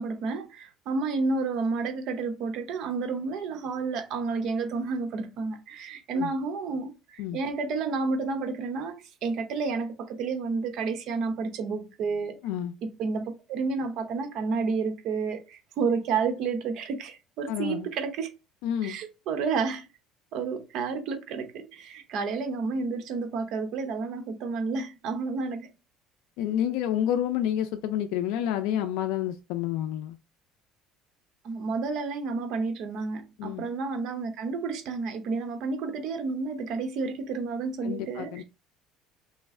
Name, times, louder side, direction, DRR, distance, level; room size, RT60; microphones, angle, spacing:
voice 1, 0.0-12.4 13.0-18.3 18.8-19.9 20.3-25.7 31.4-38.4, right 4 dB, 60° right, 0.8 m, -30 dB
voice 2, 12.4-12.7 17.5-17.9 18.6-19.0 26.4-30.2 33.4-33.6 37.8-38.4, left 10 dB, 85° left, 0.4 m, -29 dB
3.1 x 3.0 x 3.6 m
cardioid pair, 125°, 0 cm